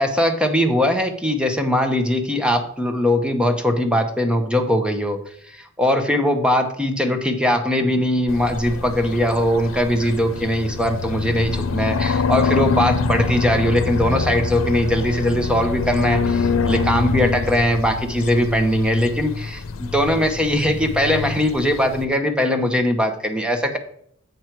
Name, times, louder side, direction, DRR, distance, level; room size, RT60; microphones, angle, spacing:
voice 1, 0.0-5.2 5.5-23.8, left 1 dB, 5° right, 6 dB, 0.8 m, -20 dB
sound 1, 8.3-22.0, left 4 dB, 90° left, 0.7 m, -25 dB
7.9 x 6.1 x 4.6 m, 0.67 s
head